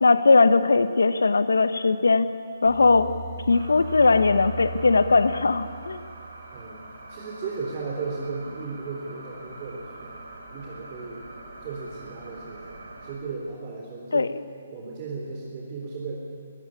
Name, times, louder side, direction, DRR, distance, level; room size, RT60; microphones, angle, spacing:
voice 1, 0.0-2.3 2.6-3.1 3.5-6.0 14.1-14.3, left 3 dB, 80° left, 13 dB, 0.9 m, -19 dB
sound 1, 2.7-6.7, right 3 dB, 50° left, 4.6 m, -38 dB
sound 2, 3.5-13.1, right 2 dB, 75° right, 5.8 m, -44 dB
voice 2, 6.5-10.2 10.5-11.3 11.6-14.3 14.7-16.2, right 4 dB, 35° right, -2 dB, 3.6 m, -35 dB
20.0 x 15.5 x 9.9 m, 2.3 s
figure-of-eight pair, 140°, 0 cm